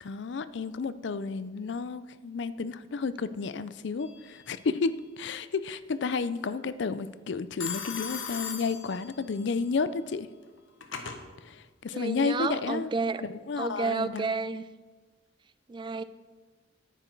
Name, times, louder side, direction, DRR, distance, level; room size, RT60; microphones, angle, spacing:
voice 1, 0.0-10.3 11.4-12.9 13.2-14.3, left 4 dB, 60° left, 15 dB, 0.4 m, -32 dB
Telephone, 4.0-4.5 7.6-9.4 10.4-11.2, left 6 dB, 75° left, 1.1 m, -38 dB
voice 2, 11.9-13.2 13.6-14.6 15.7-16.0, right 4 dB, 25° right, 14 dB, 0.3 m, -31 dB
9.8 x 9.1 x 4.5 m, 1.4 s
head